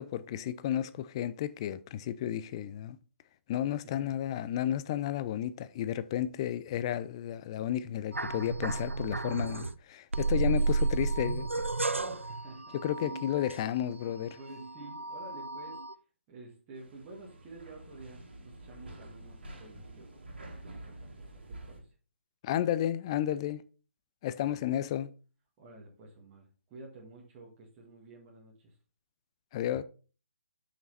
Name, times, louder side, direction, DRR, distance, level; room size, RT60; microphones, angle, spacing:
voice 1, 0.0-3.0 3.5-11.7 12.7-14.4 22.4-23.6 24.2-25.1 29.5-29.8, left 11 dB, 25° left, 0.4 m, -32 dB
voice 2, 3.8-4.2 8.3-8.4 10.3-11.1 11.9-13.2 14.4-15.8 16.3-21.9 24.4-24.7 25.6-28.8, right 2 dB, 20° right, 1.8 m, -51 dB
sound 1, 8.1-9.7 10.1-14.1 14.5-15.9, right 3 dB, 85° right, 0.4 m, -32 dB
sound 2, 16.8-21.8, right 1 dB, 55° right, 2.3 m, -48 dB
7.0 x 5.9 x 4.1 m
figure-of-eight pair, 140°, 7 cm